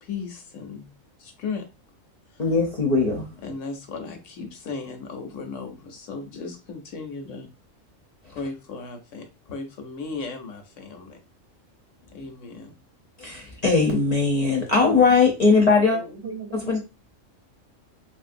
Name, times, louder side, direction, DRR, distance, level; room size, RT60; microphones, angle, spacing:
voice 1, 0.0-0.9 1.2-1.6 2.3-2.4 3.4-7.5 8.3-11.2 12.1-12.7, left 4 dB, 70° left, 6 dB, 1.0 m, -36 dB
voice 2, 2.4-3.3 8.2-8.4 13.2-16.0 16.6-16.8, left 4 dB, 40° left, 0 dB, 0.6 m, -20 dB
voice 3, 15.9-16.8, right 5 dB, 60° right, 3 dB, 0.8 m, -37 dB
3.1 x 2.6 x 2.5 m, 0.28 s
omnidirectional pair, 1.4 m